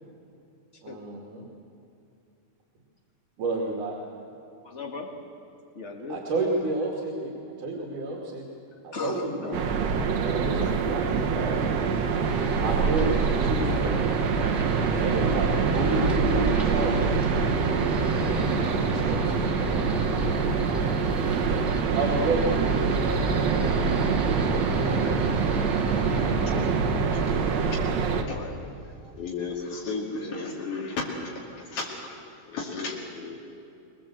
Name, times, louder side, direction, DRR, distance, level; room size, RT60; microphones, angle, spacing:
voice 1, 0.8-1.4 3.4-4.0 6.1-8.5 8.8-9.5 10.1-12.0 12.6-14.1 14.9-17.2 18.7-19.8 21.0-21.1 22.0-25.6 30.2-30.5, right 2 dB, 90° right, -1 dB, 3.9 m, -31 dB
voice 2, 4.6-5.2 5.8-6.3 8.9-9.8 10.6-11.0 14.7-15.6 27.1-27.7 28.0-28.6, left 3 dB, 25° left, 2 dB, 2.0 m, -38 dB
sound 1, 9.5-28.2, right 5 dB, 65° right, 2.3 m, -25 dB
sound 2, 12.2-27.8, right 1 dB, ahead, 2.6 m, -32 dB
voice 3, 26.3-26.7 27.1-27.8 28.3-28.4 29.1-31.2 31.6-32.1 32.5-33.4, left 4 dB, 75° left, -3 dB, 3.8 m, -34 dB
23.5 x 20.0 x 7.8 m, 2.6 s
omnidirectional pair, 3.5 m